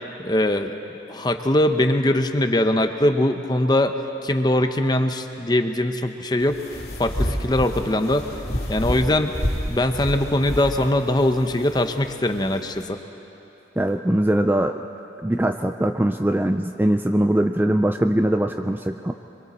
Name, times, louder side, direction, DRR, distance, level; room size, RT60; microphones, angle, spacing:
voice 1, 0.2-0.7 1.1-3.9 4.2-6.6 7.0-8.3 8.7-9.3 9.7-13.0, left 1 dB, 25° left, 7 dB, 0.8 m, -21 dB
sound 1, 6.4-12.8, equal, 55° left, 2.6 m, -30 dB
voice 2, 13.8-14.8 15.2-19.1, right 1 dB, 10° right, 6 dB, 0.4 m, -21 dB
27.5 x 23.0 x 4.3 m, 3.0 s
head